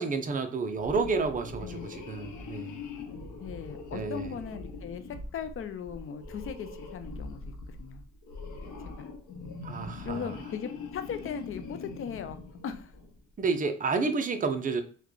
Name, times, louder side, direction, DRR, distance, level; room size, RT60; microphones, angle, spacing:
voice 1, 0.0-2.8 3.9-4.3 9.6-10.3 13.4-14.8, right 4 dB, 25° right, 7 dB, 0.5 m, -30 dB
sound 1, 0.7-13.2, left 3 dB, 80° left, 0.8 m, -42 dB
voice 2, 1.6-1.9 3.4-8.0 8.8-9.1 10.0-12.4 12.6-12.9, left 7 dB, 45° left, 9 dB, 0.5 m, -38 dB
3.1 x 2.3 x 3.7 m, 0.43 s
cardioid pair, 90°, 30 cm